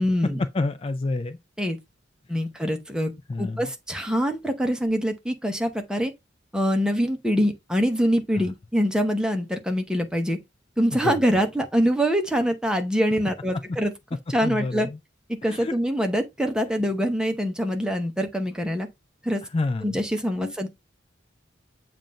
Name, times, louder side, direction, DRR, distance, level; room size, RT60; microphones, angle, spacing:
voice 1, 0.0-0.4 1.6-1.8 2.3-3.1 3.4-6.1 6.5-10.4 10.8-13.9 14.3-14.9 15.3-18.9 19.2-19.4 19.8-20.7, equal, 5° right, 0.8 m, -24 dB
voice 2, 0.5-1.4 3.3-3.7 8.3-8.5 10.9-11.2 14.4-15.0 15.5-15.8 19.5-20.0 20.3-20.5, left 2 dB, 30° left, 0.4 m, -29 dB
7.4 x 2.5 x 5.1 m
head